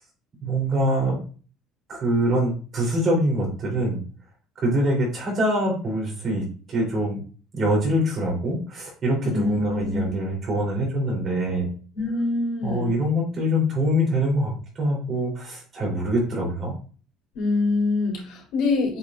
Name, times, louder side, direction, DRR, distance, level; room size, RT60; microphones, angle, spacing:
voice 1, 0.4-1.2 1.9-4.0 4.6-6.4 6.7-7.2 7.5-11.7 12.6-16.8, equal, 30° right, -2 dB, 3.5 m, -24 dB
voice 2, 9.3-10.2 11.9-13.0 17.3-19.0, left 3 dB, 70° left, -2 dB, 3.7 m, -25 dB
8.2 x 5.3 x 2.5 m, 0.39 s
cardioid pair, 165°, 0 cm